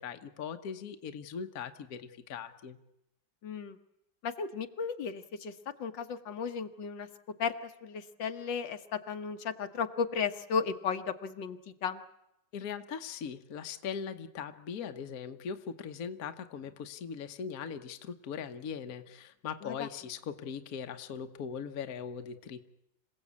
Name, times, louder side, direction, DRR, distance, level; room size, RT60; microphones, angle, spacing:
voice 1, 0.0-2.8 12.5-22.6, left 7 dB, 55° left, 7 dB, 1.4 m, -40 dB
voice 2, 3.4-3.8 4.2-5.5 5.8-7.1 7.4-12.0 19.6-19.9, left 6 dB, 70° left, 8 dB, 1.7 m, -35 dB
27.0 x 16.5 x 8.5 m, 0.87 s
omnidirectional pair, 2.1 m